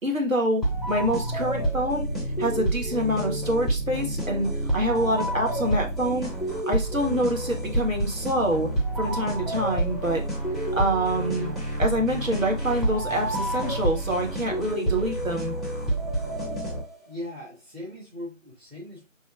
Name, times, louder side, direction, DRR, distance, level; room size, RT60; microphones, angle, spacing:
voice 1, 0.0-2.1 2.4-6.3 6.7-8.7 9.0-10.2 10.7-11.5 11.8-15.6, equal, 90° right, 1 dB, 1.5 m, -26 dB
sound 1, 0.6-17.1, right 1 dB, ahead, 0.6 m, -28 dB
voice 2, 17.0-19.1, left 1 dB, 50° right, -7 dB, 1.7 m, -39 dB
4.5 x 3.0 x 2.4 m, 0.25 s
figure-of-eight pair, 175°, 39 cm